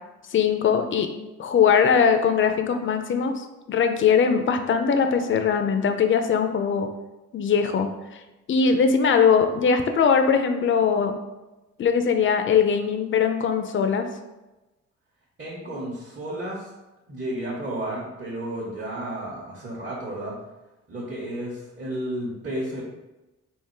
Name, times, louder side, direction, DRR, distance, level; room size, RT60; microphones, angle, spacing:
voice 1, 0.3-1.1 1.4-6.9 7.3-7.9 8.5-11.2 11.8-14.1, left 6 dB, 40° left, 7 dB, 0.5 m, -21 dB
voice 2, 15.4-16.7 17.1-20.3 20.9-22.8, right 1 dB, 40° right, -6 dB, 1.0 m, -32 dB
3.8 x 2.5 x 4.5 m, 1.0 s
cardioid pair, 90°, 30 cm